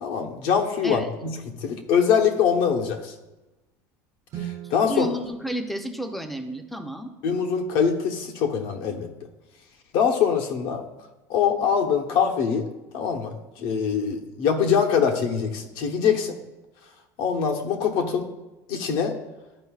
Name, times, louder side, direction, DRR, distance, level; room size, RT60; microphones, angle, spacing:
voice 1, 0.0-3.1 4.4-5.1 7.2-9.1 9.9-10.8 11.3-12.7 12.9-16.3 17.2-18.3 18.7-19.1, left 7 dB, 60° left, 4 dB, 1.1 m, -23 dB
Guitar, 4.3-6.9, right 11 dB, 35° right, 0.6 m, -41 dB
voice 2, 4.9-7.1, right 1 dB, ahead, 6 dB, 0.6 m, -31 dB
12.0 x 5.0 x 2.4 m, 1.1 s
cardioid pair, 150°, 9 cm